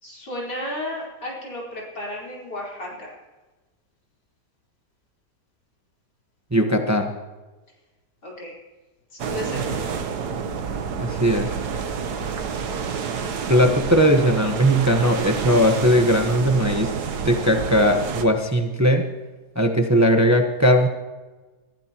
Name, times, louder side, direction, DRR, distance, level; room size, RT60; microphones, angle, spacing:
voice 1, 0.0-3.1 8.2-8.5 9.1-9.8, left 1 dB, 90° left, -4 dB, 5.1 m, -33 dB
voice 2, 6.5-7.1 11.0-11.5 13.5-16.9 17.2-19.1 19.5-20.9, equal, 10° right, 4 dB, 1.0 m, -19 dB
sound 1, 9.2-18.2, right 6 dB, 75° right, 1.6 m, -28 dB
29.0 x 15.0 x 3.0 m, 1.2 s
omnidirectional pair, 1.7 m